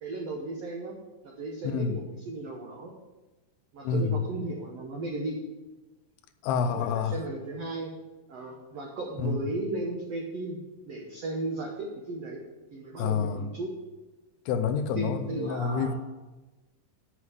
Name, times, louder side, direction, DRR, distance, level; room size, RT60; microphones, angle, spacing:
voice 1, 0.0-2.9 3.7-5.4 6.6-7.9 8.3-10.6 10.8-12.4 12.7-13.7 14.9-15.9, right 2 dB, 90° right, 0 dB, 1.4 m, -35 dB
voice 2, 1.6-2.0 3.8-4.3 6.4-7.2 9.2-9.4 13.0-13.4 14.5-15.9, left 6 dB, 85° left, 8 dB, 2.7 m, -28 dB
7.4 x 6.3 x 7.7 m, 1.1 s
omnidirectional pair, 4.5 m